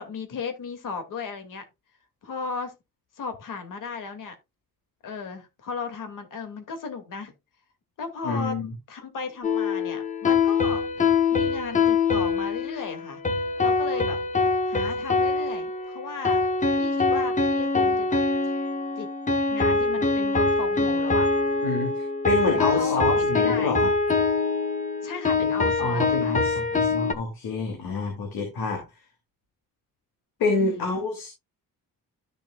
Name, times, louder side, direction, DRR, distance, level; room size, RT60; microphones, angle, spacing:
voice 1, 0.0-1.7 2.2-2.7 3.2-4.4 5.0-7.3 8.0-8.6 8.9-10.8 11.3-13.2 13.6-14.2 14.7-16.5 16.7-18.6 19.0-19.1 19.5-21.3 22.5-23.8 25.0-26.4 30.6-30.9, left 4 dB, 60° left, 2.4 m, -35 dB
voice 2, 8.2-8.7 21.6-23.9 25.8-28.8 30.4-31.3, left 3 dB, 80° left, 2.8 m, -27 dB
sound 1, 9.4-27.1, left 4 dB, 20° left, 0.9 m, -24 dB
13.0 x 6.6 x 2.3 m
cardioid pair, 170°, 36 cm